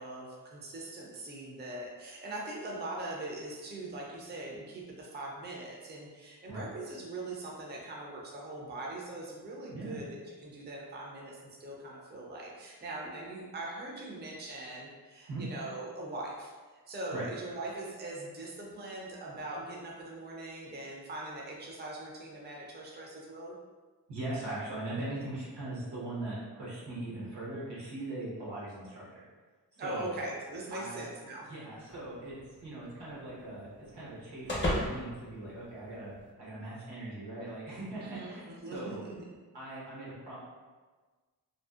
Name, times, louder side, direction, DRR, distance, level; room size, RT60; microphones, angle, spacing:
voice 1, 0.0-16.5 16.9-23.5 29.8-31.5 38.0-39.4, right 2 dB, 25° right, -2 dB, 0.5 m, -41 dB
voice 2, 24.1-29.2 29.8-30.1 30.7-31.1 31.5-32.4 32.6-36.1 36.4-39.0 39.5-40.4, right 2 dB, 80° right, -7 dB, 1.0 m, -40 dB
sound 1, 31.9-36.3, left 1 dB, 30° left, 0.6 m, -38 dB
2.6 x 2.0 x 2.3 m, 1.4 s
wide cardioid pair, 70°, 41 cm